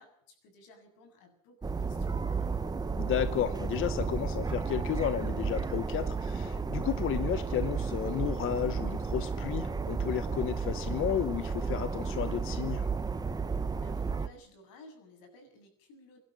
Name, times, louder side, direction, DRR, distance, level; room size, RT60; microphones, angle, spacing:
voice 1, 0.0-2.6 13.8-16.2, left 1 dB, 75° left, 6 dB, 7.4 m, -56 dB
sound 1, 1.6-14.3, right 4 dB, 10° right, 0.8 m, -33 dB
voice 2, 3.0-12.9, left 10 dB, 35° left, 12 dB, 1.0 m, -33 dB
24.5 x 12.0 x 9.9 m, 0.64 s
cardioid pair, 170°, 36 cm